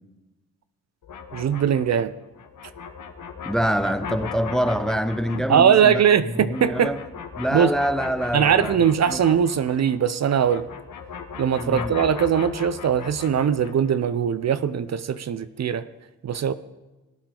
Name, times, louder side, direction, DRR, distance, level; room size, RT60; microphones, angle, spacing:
sound 1, 1.0-10.0 10.3-13.9, left 6 dB, 55° left, 1.4 m, -38 dB
voice 1, 1.3-2.1 5.5-6.9 7.5-7.7 8.3-10.6 11.4-15.8 16.2-16.5, right 8 dB, 45° right, 14 dB, 0.6 m, -20 dB
voice 2, 3.4-6.0 6.4-7.0 7.4-9.2 11.6-12.0, equal, ahead, 12 dB, 0.7 m, -25 dB
18.5 x 8.7 x 3.8 m, 1.1 s
supercardioid pair, 60°, 36 cm